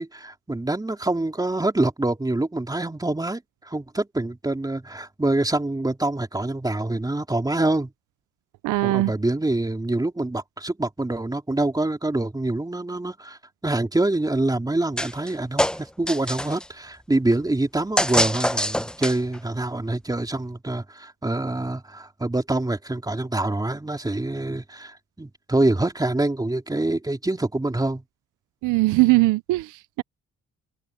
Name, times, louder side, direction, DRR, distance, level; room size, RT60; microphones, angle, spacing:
voice 1, 0.0-7.9 8.8-28.0, right 2 dB, 10° right, 3.4 m, -25 dB
voice 2, 8.6-9.1 28.6-30.0, right 21 dB, 90° right, 0.6 m, -20 dB
sound 1, 15.0-15.3 15.6-16.7 18.0-19.4, left 1 dB, 5° left, 0.7 m, -24 dB
open air
cardioid pair, 90°, 30 cm